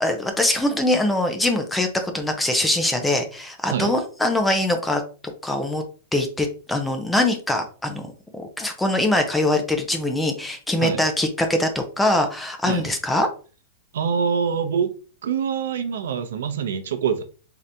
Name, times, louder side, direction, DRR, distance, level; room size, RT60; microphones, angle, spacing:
voice 1, 0.0-5.0 5.4-5.8 6.1-13.3, left 1 dB, 5° left, 5 dB, 0.4 m, -23 dB
voice 2, 13.9-14.9 15.2-17.2, right 7 dB, 75° right, 9 dB, 0.6 m, -25 dB
3.8 x 2.8 x 3.3 m, 0.37 s
supercardioid pair, 180°, 0 cm